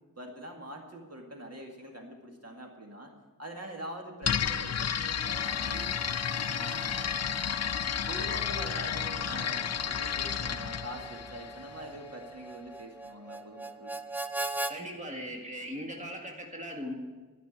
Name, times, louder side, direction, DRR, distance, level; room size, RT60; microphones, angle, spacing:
voice 1, 0.0-3.1 3.4-5.9 6.3-7.1 8.1-13.9, right 1 dB, 45° right, 1 dB, 2.0 m, -44 dB
sound 1, 4.2-12.0, left 8 dB, 50° left, 0.5 m, -32 dB
Harmonica, 5.2-14.8, right 2 dB, 5° right, 0.6 m, -42 dB
voice 2, 14.7-16.9, equal, 20° right, 1 dB, 1.9 m, -39 dB
13.0 x 6.1 x 8.3 m, 1.4 s
wide cardioid pair, 60°, 35 cm